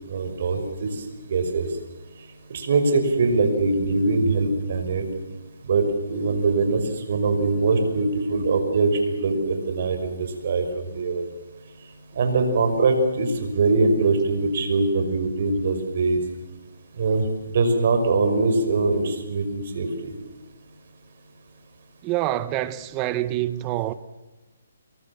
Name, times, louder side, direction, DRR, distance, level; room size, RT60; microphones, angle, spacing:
voice 1, 0.1-0.9 1.3-1.7 2.5-5.1 5.7-6.8 7.1-11.2 12.2-16.2 17.0-17.3 17.5-20.1, right 3 dB, 55° right, 5.8 m, -22 dB
voice 2, 22.0-23.9, right 14 dB, 20° right, 1.2 m, -26 dB
27.5 x 23.0 x 7.4 m
hypercardioid pair, 155°, 0 cm